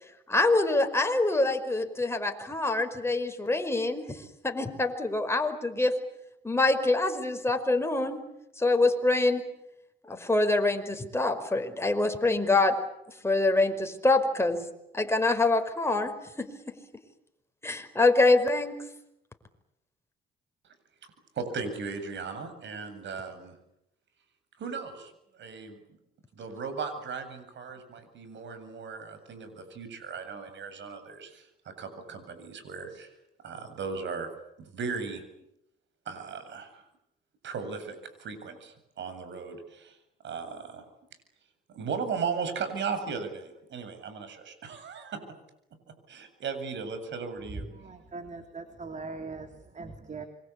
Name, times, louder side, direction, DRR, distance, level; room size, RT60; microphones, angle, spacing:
voice 1, 0.3-4.2 4.4-6.0 6.4-8.2 8.6-9.4 10.1-12.8 13.2-14.7 14.9-16.8 17.6-18.8, left 2 dB, 15° left, 6 dB, 5.2 m, -25 dB
voice 2, 21.4-23.6 24.6-25.8 26.4-33.1 33.4-34.3 34.6-35.2 36.1-36.8 37.4-40.0 40.2-40.8 41.7-45.2 46.1-47.7, right 5 dB, 65° right, 9 dB, 7.8 m, -37 dB
voice 3, 47.7-50.3, right 4 dB, 35° right, 7 dB, 3.5 m, -41 dB
27.0 x 24.5 x 8.4 m, 0.81 s
cardioid pair, 90°, 20 cm